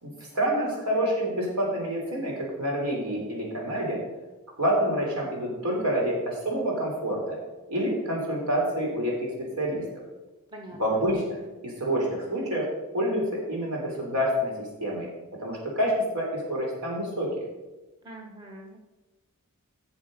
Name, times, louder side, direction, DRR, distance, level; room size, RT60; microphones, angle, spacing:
voice 1, 0.0-4.0 4.6-7.4 7.7-9.9 10.7-11.4 11.6-12.7 12.9-15.1 15.4-17.3, equal, 85° right, -1 dB, 3.7 m, -27 dB
voice 2, 18.0-18.8, right 1 dB, 20° right, 0 dB, 1.3 m, -43 dB
11.5 x 7.2 x 5.2 m, 1.1 s
head